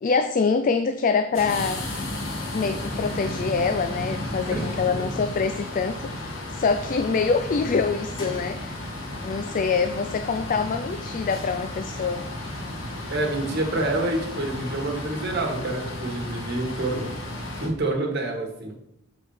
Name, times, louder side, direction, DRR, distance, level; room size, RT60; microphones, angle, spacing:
voice 1, 0.0-1.9 2.5-8.8 9.2-12.2, left 5 dB, 45° left, 10 dB, 0.3 m, -25 dB
sound 1, 1.3-17.7, left 1 dB, 80° left, 1.6 m, -33 dB
voice 2, 4.5-5.1 13.1-17.1 17.6-18.7, right 2 dB, 55° right, 0 dB, 1.6 m, -28 dB
7.3 x 4.3 x 4.9 m, 0.78 s
head